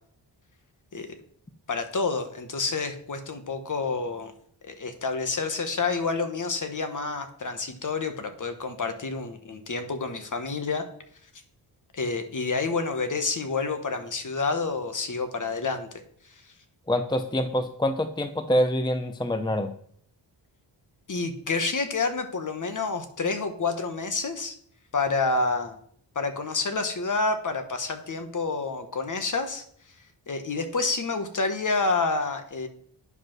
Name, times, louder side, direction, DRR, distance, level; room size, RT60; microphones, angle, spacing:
voice 1, 1.7-4.3 4.6-10.8 11.9-15.9 16.3-16.4 21.1-24.6 24.9-25.8 26.1-29.6 30.3-32.7, left 4 dB, 45° left, 7 dB, 1.3 m, -28 dB
voice 2, 16.9-19.7, equal, 10° left, 8 dB, 0.6 m, -25 dB
9.5 x 5.2 x 6.0 m, 0.62 s
wide cardioid pair, 110°, 44 cm